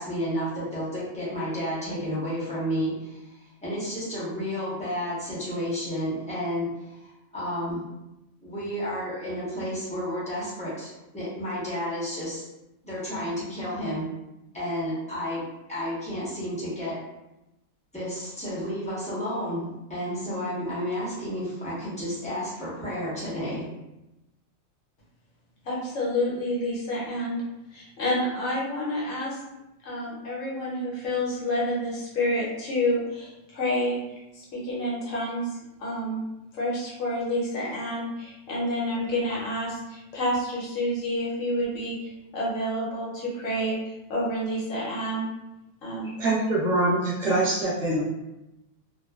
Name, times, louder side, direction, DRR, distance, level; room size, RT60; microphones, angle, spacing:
voice 1, 0.0-2.9 3.6-6.7 7.3-7.8 8.4-12.4 12.8-14.1 14.5-15.4 15.7-17.0 17.9-23.7, equal, 5° left, -9 dB, 0.8 m, -31 dB
voice 2, 25.6-27.4 27.7-29.4 29.8-34.0 34.3-35.5 35.8-36.2 36.5-45.3 45.8-46.2, left 1 dB, 70° left, -6 dB, 1.1 m, -29 dB
voice 3, 46.2-48.0, right 2 dB, 30° right, -8 dB, 0.9 m, -24 dB
2.5 x 2.2 x 2.2 m, 0.94 s
omnidirectional pair, 1.5 m